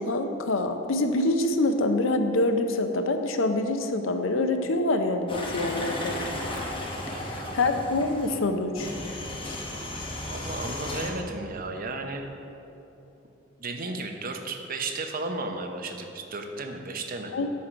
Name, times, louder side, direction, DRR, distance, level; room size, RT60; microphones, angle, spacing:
voice 1, 0.0-6.1 7.1-8.9 9.5-9.6 17.3-17.5, left 2 dB, 80° left, 7 dB, 0.6 m, -26 dB
sound 1, 5.3-8.4 8.8-11.1, left 1 dB, 25° left, 1.0 m, -34 dB
voice 2, 7.1-7.6 10.3-12.3 13.6-17.4, right 2 dB, 45° right, 4 dB, 0.7 m, -34 dB
8.5 x 5.9 x 5.0 m, 3.0 s
head